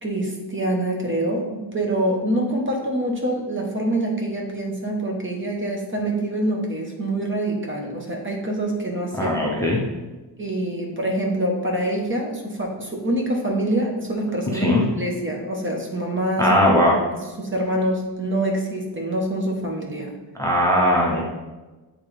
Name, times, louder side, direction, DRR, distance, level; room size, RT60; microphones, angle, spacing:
voice 1, 0.0-9.7 10.4-16.5 17.4-20.1, right 1 dB, 25° right, 0 dB, 0.9 m, -25 dB
voice 2, 9.2-9.8 14.5-14.9 16.4-16.9 20.4-21.2, left 1 dB, 5° left, -3 dB, 0.7 m, -19 dB
8.1 x 3.8 x 3.3 m, 1.2 s
wide cardioid pair, 170°, 46 cm